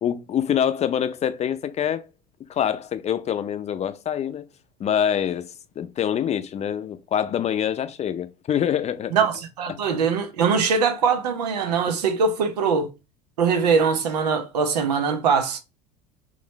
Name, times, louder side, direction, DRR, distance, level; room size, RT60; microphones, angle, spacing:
voice 1, 0.0-2.0 2.5-4.4 4.8-9.1 9.7-9.8 12.0-12.1, left 9 dB, 35° left, 0.6 m, -25 dB
voice 2, 9.1-12.9 13.4-15.6, right 5 dB, 80° right, 0.8 m, -22 dB
3.9 x 3.2 x 3.0 m
hypercardioid pair, 75°, 20 cm